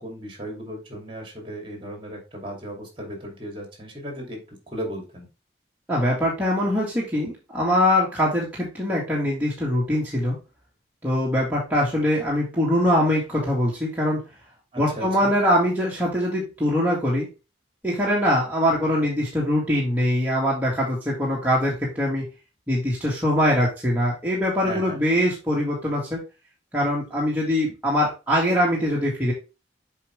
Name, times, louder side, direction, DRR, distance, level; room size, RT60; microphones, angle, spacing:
voice 1, 0.0-5.3 14.7-15.3 24.6-25.0, equal, 30° right, 3 dB, 2.5 m, -36 dB
voice 2, 5.9-10.4 11.0-14.2 14.8-17.3 17.8-22.2 22.7-26.2 26.7-29.3, equal, 10° right, -5 dB, 1.8 m, -23 dB
7.4 x 4.9 x 3.2 m, 0.29 s
head